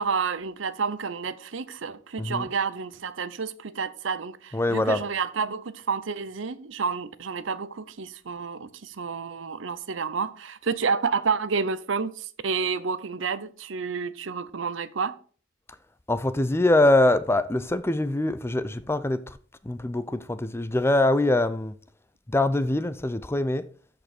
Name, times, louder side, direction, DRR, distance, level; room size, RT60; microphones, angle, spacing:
voice 1, 0.0-15.2, right 5 dB, 75° right, 0.7 m, -30 dB
voice 2, 2.2-2.5 4.5-5.1 16.1-19.4 19.6-21.7 22.3-23.6, left 2 dB, 15° left, 0.5 m, -23 dB
13.0 x 5.3 x 4.4 m
head